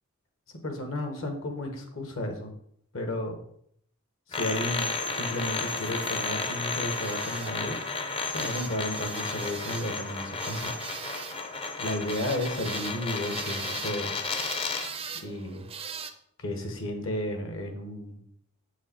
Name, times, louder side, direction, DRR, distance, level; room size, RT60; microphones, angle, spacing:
voice 1, 0.6-2.5 2.9-3.4 4.3-7.8 8.3-10.8 11.8-14.1 15.2-15.6 16.4-18.2, left 1 dB, 60° left, 4 dB, 1.2 m, -33 dB
sound 1, 4.3-15.0, left 3 dB, 25° left, 0.6 m, -33 dB
sound 2, 4.5-16.1, right 6 dB, 25° right, 0.5 m, -43 dB
7.1 x 4.8 x 4.4 m, 0.69 s
head